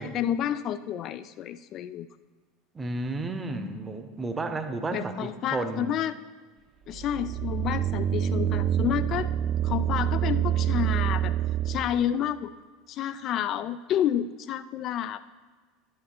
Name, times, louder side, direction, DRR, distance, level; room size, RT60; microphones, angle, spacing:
voice 1, 0.0-2.1 4.9-6.1 6.9-9.3 9.6-11.3 11.7-12.5 12.9-15.2, left 10 dB, 40° left, 13 dB, 0.3 m, -29 dB
voice 2, 2.7-6.0, right 2 dB, 20° right, 9 dB, 0.8 m, -32 dB
sound 1, 6.9-12.0, right 10 dB, 35° right, 0.3 m, -27 dB
11.0 x 6.7 x 4.2 m, 1.4 s
figure-of-eight pair, 75°, 0 cm